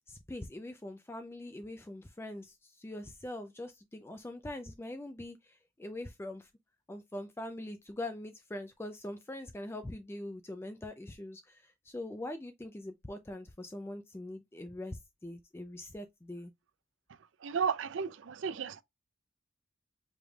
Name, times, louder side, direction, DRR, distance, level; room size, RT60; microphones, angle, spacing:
voice 1, 0.1-6.5 6.9-16.5, left 1 dB, 15° left, 0.3 m, -43 dB
voice 2, 17.4-18.8, right 6 dB, 70° right, 0.4 m, -33 dB
5.1 x 3.2 x 2.2 m
head